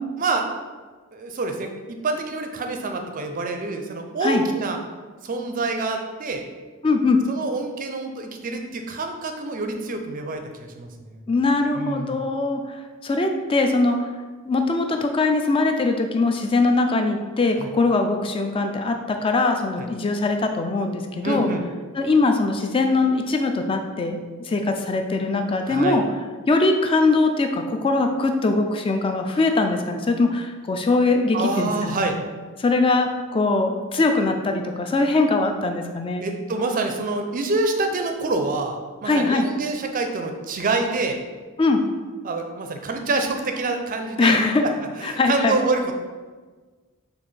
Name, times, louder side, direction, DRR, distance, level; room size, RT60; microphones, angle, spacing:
voice 1, 1.1-4.8 5.2-6.4 7.3-11.2 11.8-12.2 17.6-17.7 19.8-19.9 21.2-21.6 25.7-26.0 31.3-32.2 36.2-41.2 42.2-44.7 45.0-45.9, right 3 dB, 40° right, 5 dB, 0.4 m, -26 dB
voice 2, 6.8-7.2 11.3-12.6 13.0-14.1 14.5-21.5 21.9-24.2 24.4-26.0 26.5-32.0 32.6-36.2 39.1-39.5 41.6-41.8 44.2-44.6 45.0-45.6, left 3 dB, 25° left, 5 dB, 0.3 m, -21 dB
4.6 x 2.6 x 4.1 m, 1.4 s
head